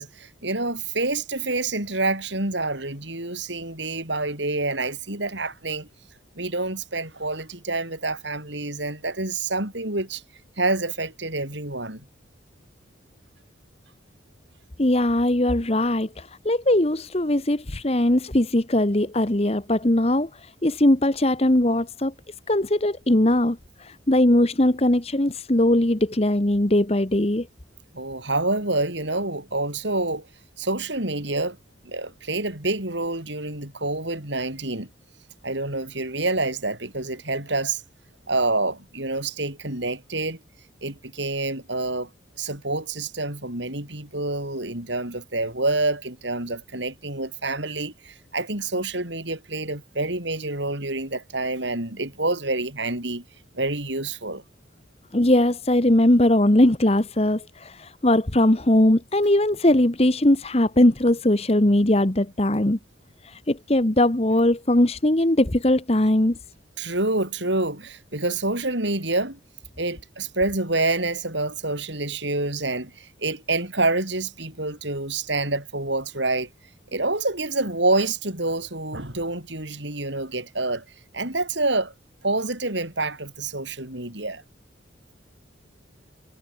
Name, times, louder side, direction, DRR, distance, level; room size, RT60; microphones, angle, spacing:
voice 1, 0.0-5.9 6.4-10.2 10.6-12.0 27.9-30.3 30.6-31.6 31.8-34.9 35.4-37.8 38.3-40.4 40.8-42.1 42.4-53.2 53.5-54.4 66.8-69.4 69.8-76.5 76.9-80.8 81.1-81.9 82.2-84.4, right 2 dB, 65° right, 6.1 m, -27 dB
voice 2, 14.8-22.1 22.5-27.5 55.1-62.8 63.2-66.4, left 1 dB, 30° left, 1.2 m, -20 dB
head